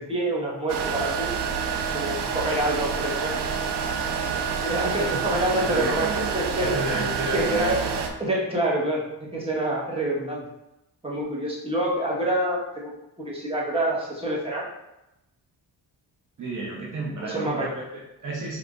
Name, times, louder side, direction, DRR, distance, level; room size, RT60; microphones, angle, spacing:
voice 1, 0.0-1.4 1.9-3.3 4.6-9.1 9.3-10.4 11.0-12.9 13.2-14.7 17.2-17.7, right 1 dB, 15° right, -5 dB, 1.4 m, -27 dB
sound 1, 0.7-8.1, right 6 dB, 85° right, 0.6 m, -28 dB
voice 2, 5.5-6.3 6.6-7.9 16.4-18.6, right 2 dB, 45° right, -3 dB, 0.9 m, -32 dB
4.6 x 3.4 x 2.5 m, 0.91 s
cardioid pair, 75°, 41 cm